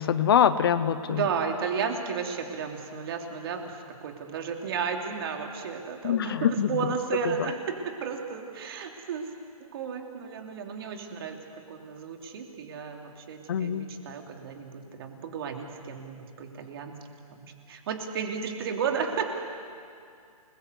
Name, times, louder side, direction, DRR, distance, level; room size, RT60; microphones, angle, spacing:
voice 1, 0.0-1.2 6.0-6.7 13.5-13.9, left 8 dB, 40° left, 13 dB, 0.8 m, -24 dB
voice 2, 1.1-9.3 9.7-11.4 11.7-17.0 17.3-19.3, right 6 dB, 40° right, 3 dB, 2.9 m, -33 dB
29.0 x 21.0 x 8.2 m, 2.4 s
hypercardioid pair, 165°, 19 cm